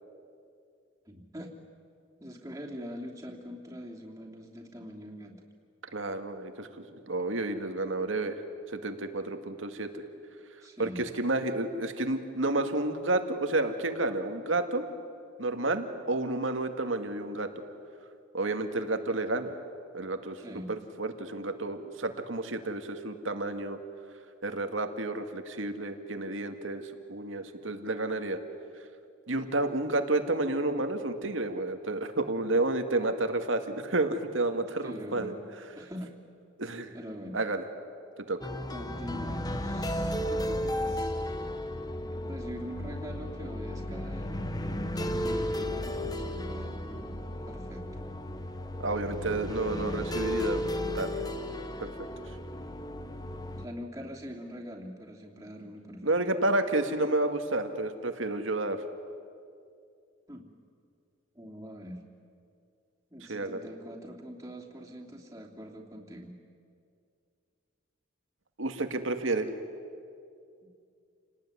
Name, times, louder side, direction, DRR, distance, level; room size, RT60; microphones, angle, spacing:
voice 1, 1.1-1.5 2.2-5.4 10.6-11.1 20.4-20.7 34.8-35.4 35.8-36.1 36.9-37.4 38.7-41.2 42.2-47.1 47.5-47.9 53.6-56.2 60.3-60.5 61.3-62.0 63.1-66.4, equal, 15° right, -2 dB, 3.0 m, -43 dB
voice 2, 5.9-8.4 8.7-10.0 10.8-14.9 15.4-17.6 18.3-19.6 19.9-20.4 20.7-23.8 24.4-28.4 29.3-35.3 36.6-36.9 37.3-37.6 38.3-38.4 48.8-51.1 51.8-51.9 52.3-52.4 56.0-58.8 63.3-63.6 68.6-69.5, right 2 dB, 80° right, 7 dB, 2.0 m, -30 dB
sound 1, 38.4-53.7, left 1 dB, 20° left, 1.1 m, -34 dB
29.0 x 19.0 x 9.9 m, 2.4 s
head